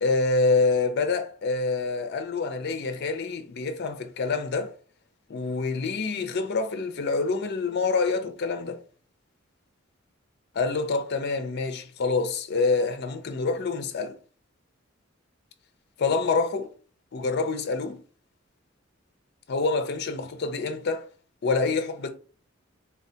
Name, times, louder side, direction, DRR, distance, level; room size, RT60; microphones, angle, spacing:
voice 1, 0.0-4.7 5.3-8.8 10.5-14.2 16.0-16.7 17.1-18.0 19.5-21.1 21.4-22.1, left 4 dB, 55° left, 0.5 m, -26 dB
3.6 x 2.3 x 2.7 m
head